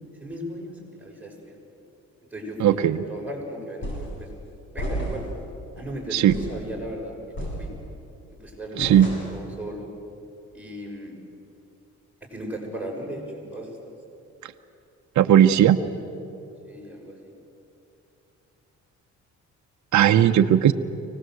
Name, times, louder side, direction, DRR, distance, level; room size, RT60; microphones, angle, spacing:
voice 1, 0.2-1.6 2.3-4.3 4.7-5.2 5.8-7.7 8.4-8.8 9.3-9.9 10.5-11.1 12.3-13.8 16.6-17.3, equal, 5° right, -2 dB, 6.5 m, -36 dB
voice 2, 2.6-3.0 6.1-6.4 8.8-9.1 15.2-15.8 19.9-20.7, right 10 dB, 70° right, 7 dB, 0.9 m, -17 dB
sound 1, 3.8-4.2 4.8-5.4 5.8-5.9 6.3-6.6 7.4-8.0 8.8-9.5, equal, 40° left, 8.0 m, -32 dB
24.0 x 19.0 x 7.9 m, 2.8 s
cardioid pair, 90°, 30 cm